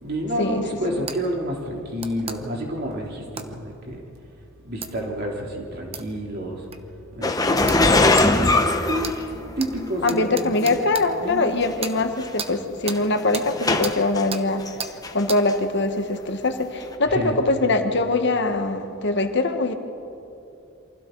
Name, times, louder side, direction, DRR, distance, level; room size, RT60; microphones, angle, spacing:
voice 1, 0.0-4.0 4.6-6.6 7.1-8.1 8.9-9.2 9.6-10.8 11.2-11.5 17.1-17.4, equal, 50° right, -1 dB, 3.2 m, -29 dB
sound 1, 1.1-1.2 2.0-2.4 3.4-3.5 4.8-4.9 5.9-6.1 6.7-6.8 7.7-7.8 8.2-8.3 9.0-9.2 9.6-9.7 10.1-11.1 11.8-12.0 12.4-12.5 12.9-13.0 13.3-13.5 13.8-14.0 14.3-14.4 14.8-14.9 15.3-15.4, right 6 dB, 30° right, 1.0 m, -32 dB
sound 2, 7.2-9.8 10.6-10.7 11.6-11.7 12.0-12.3 12.9-14.2 14.7-15.2 15.5-15.6 16.8-16.9, left 2 dB, 20° left, 0.9 m, -21 dB
voice 2, 10.0-14.6 15.1-19.7, left 2 dB, 55° left, 6 dB, 1.3 m, -22 dB
28.0 x 24.0 x 4.0 m, 2.7 s
head